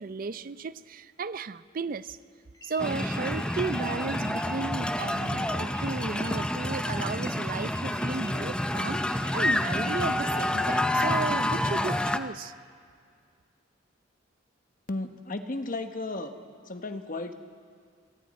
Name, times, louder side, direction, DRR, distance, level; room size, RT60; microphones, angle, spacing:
voice 1, 0.0-2.2 2.6-12.5, right 4 dB, 50° right, 0.5 m, -34 dB
sound 1, 2.5-11.1, equal, 20° left, 2.1 m, -45 dB
sound 2, 2.8-12.2, left 1 dB, 5° left, 0.6 m, -28 dB
voice 2, 14.9-16.4 16.7-17.3, left 2 dB, 45° left, 1.2 m, -34 dB
28.0 x 23.0 x 4.3 m
head